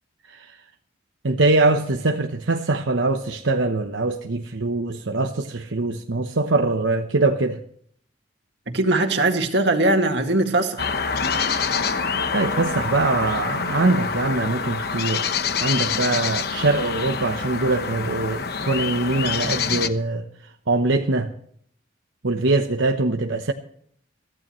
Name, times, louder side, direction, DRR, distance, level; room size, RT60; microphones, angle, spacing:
voice 1, 1.2-7.6 12.3-15.3 15.6-20.2 20.7-21.3 22.2-23.5, right 2 dB, 80° right, 0.9 m, -23 dB
voice 2, 8.7-10.9, right 2 dB, 60° right, 2.1 m, -20 dB
sound 1, 10.8-19.9, left 5 dB, 55° left, 1.0 m, -26 dB
23.0 x 15.0 x 3.1 m
head